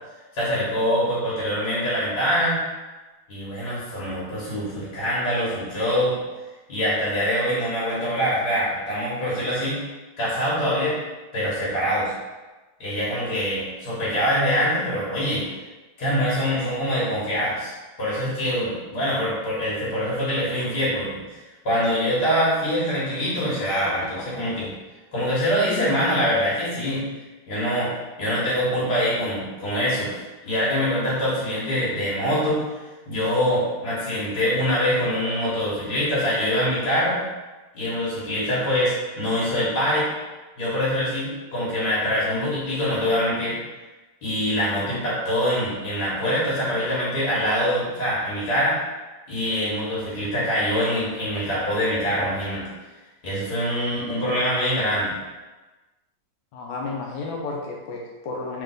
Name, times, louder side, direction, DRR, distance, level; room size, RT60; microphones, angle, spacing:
voice 1, 0.3-2.6 3.3-6.2 6.7-9.8 10.2-11.0 11.3-12.1 12.8-15.4 16.0-17.7 18.0-21.4 21.6-24.7 25.1-27.0 27.5-27.9 28.2-32.6 33.1-37.2 37.7-40.1 40.6-43.6 44.2-48.8 49.3-52.6 53.2-55.1, equal, 60° left, -9 dB, 1.9 m, -24 dB
voice 2, 56.5-58.6, left 3 dB, 85° left, -1 dB, 1.3 m, -32 dB
3.4 x 3.1 x 3.8 m, 1.2 s
omnidirectional pair, 2.1 m